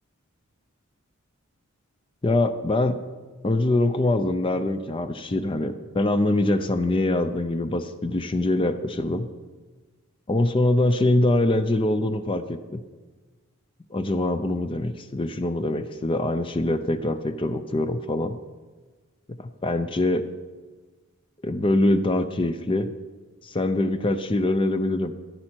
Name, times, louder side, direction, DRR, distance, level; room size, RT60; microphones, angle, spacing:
voice 1, 2.2-3.0 3.4-9.3 10.3-12.8 13.9-18.4 19.4-20.2 21.4-22.9 23.4-25.1, left 2 dB, 25° left, 10 dB, 0.5 m, -24 dB
14.0 x 11.0 x 4.5 m, 1.4 s
head